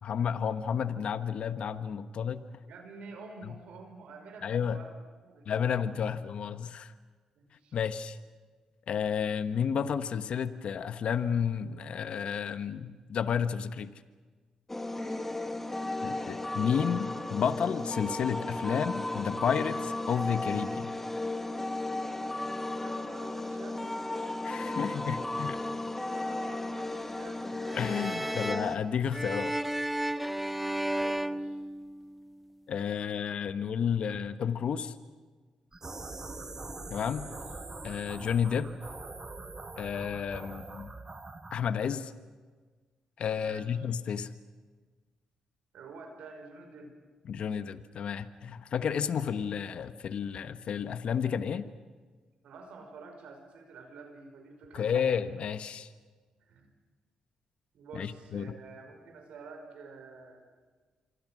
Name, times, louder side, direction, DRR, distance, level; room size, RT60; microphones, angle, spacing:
voice 1, 0.0-2.4 4.4-4.8 5.5-6.9 7.7-8.2 8.9-13.9 16.0-20.9 24.4-25.6 27.7-29.6 32.7-34.9 36.9-37.3 37.8-38.7 39.8-40.9 41.5-42.1 43.2-44.3 47.3-51.7 54.7-55.9 57.9-58.5, left 7 dB, 65° left, 11 dB, 1.2 m, -31 dB
voice 2, 2.6-5.0 5.2-5.8 7.4-7.8 15.0-15.4 22.7-23.9 26.1-27.6 28.2-28.4 30.8-31.6 37.1-37.4 40.4-40.6 43.4-43.7 45.7-47.0 52.4-55.1 56.5-56.7 57.7-60.4, right 4 dB, 75° right, 4 dB, 5.4 m, -49 dB
sound 1, 14.7-28.8, left 2 dB, 15° left, 2.1 m, -35 dB
sound 2, 27.7-32.3, right 1 dB, 5° right, 0.9 m, -33 dB
sound 3, 35.7-41.8, right 3 dB, 30° right, 2.0 m, -43 dB
26.5 x 24.0 x 6.3 m, 1.4 s
supercardioid pair, 65°, 2 cm